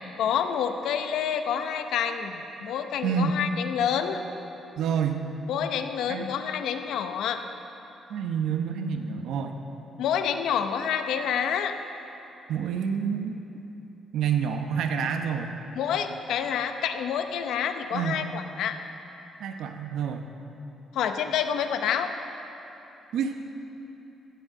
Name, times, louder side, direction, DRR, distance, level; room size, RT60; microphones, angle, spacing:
voice 1, 0.2-4.2 5.5-7.4 10.0-11.8 15.8-18.8 20.9-22.1, left 8 dB, 80° left, 8 dB, 0.8 m, -28 dB
voice 2, 3.0-3.4 4.8-5.2 6.1-6.3 8.1-9.5 12.5-13.4 14.1-15.5 17.9-18.2 19.4-20.2 23.1-23.4, right 7 dB, 80° right, 5 dB, 0.9 m, -28 dB
17.0 x 7.4 x 7.8 m, 3.0 s
cardioid pair, 90°, 0 cm